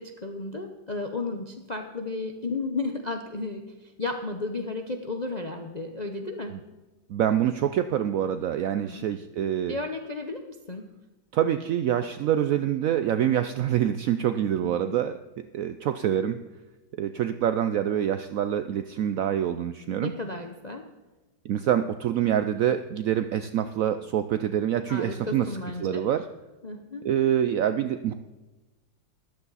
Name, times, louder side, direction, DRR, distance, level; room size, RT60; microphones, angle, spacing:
voice 1, 0.0-3.7 4.0-6.5 8.8-9.1 9.7-10.4 10.7-10.8 14.6-15.0 20.0-20.8 24.9-26.0 26.6-27.0, left 3 dB, 40° left, 4 dB, 0.6 m, -33 dB
voice 2, 7.1-9.8 11.3-15.2 15.5-16.4 17.0-20.1 21.4-25.5 25.8-26.3 27.0-28.1, right 10 dB, 85° right, 10 dB, 0.7 m, -26 dB
14.0 x 12.5 x 4.1 m, 1.1 s
omnidirectional pair, 2.0 m